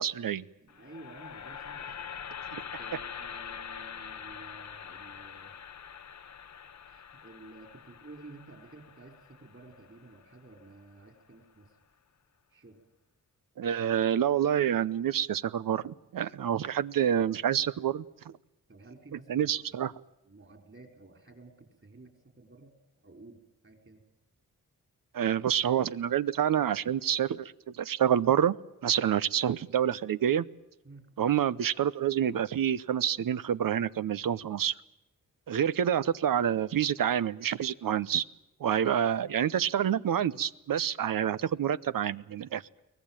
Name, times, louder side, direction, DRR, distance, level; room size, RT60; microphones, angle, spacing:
voice 1, 0.0-0.4 2.5-2.6 13.6-18.0 19.3-19.9 25.1-27.5 27.8-28.5 28.8-30.4 31.2-34.7 35.5-38.2 38.6-42.6, right 9 dB, 75° right, 16 dB, 0.7 m, -27 dB
voice 2, 0.6-1.8 2.6-5.5 6.8-11.7 12.5-12.8 18.7-19.9 20.2-22.1 22.4-22.7 23.0-24.0 30.8-31.1, right 2 dB, 35° right, 6 dB, 5.0 m, -52 dB
sound 1, 0.7-10.8, left 8 dB, 55° left, 0.9 m, -44 dB
23.5 x 18.0 x 9.0 m, 0.91 s
cardioid pair, 75°, 34 cm